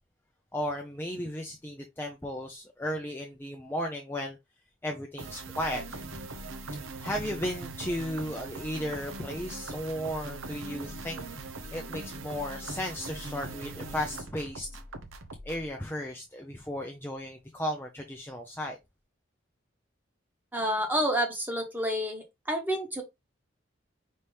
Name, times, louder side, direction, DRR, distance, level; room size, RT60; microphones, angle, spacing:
voice 1, 0.5-4.4 4.8-6.2 7.0-11.2 11.7-14.8 15.4-18.8, equal, 10° left, 0.5 m, -35 dB
sound 1, 5.2-15.7, right 2 dB, 85° right, 0.8 m, -41 dB
voice 2, 20.5-23.0, equal, 10° right, 1.1 m, -29 dB
5.3 x 3.0 x 3.2 m
head